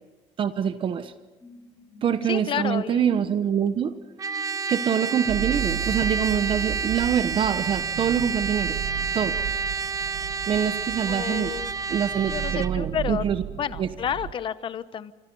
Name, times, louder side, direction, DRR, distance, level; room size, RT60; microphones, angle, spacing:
voice 1, 0.4-1.1 2.0-4.0 4.7-8.8 9.1-9.4 10.5-11.5 11.9-13.4 13.8-13.9, right 8 dB, 45° right, 11 dB, 1.1 m, -25 dB
sound 1, 1.4-8.8 9.3-9.4, left 2 dB, 15° left, 4.9 m, -48 dB
voice 2, 2.2-3.1 11.1-11.7 12.3-13.2 13.5-15.1, left 8 dB, 40° left, 14 dB, 1.0 m, -30 dB
Trumpet, 4.2-12.7, right 5 dB, 30° right, 0.7 m, -29 dB
sound 2, 5.3-14.3, right 10 dB, 70° right, 1.1 m, -34 dB
27.5 x 25.5 x 5.5 m, 1.1 s
cardioid pair, 140°, 13 cm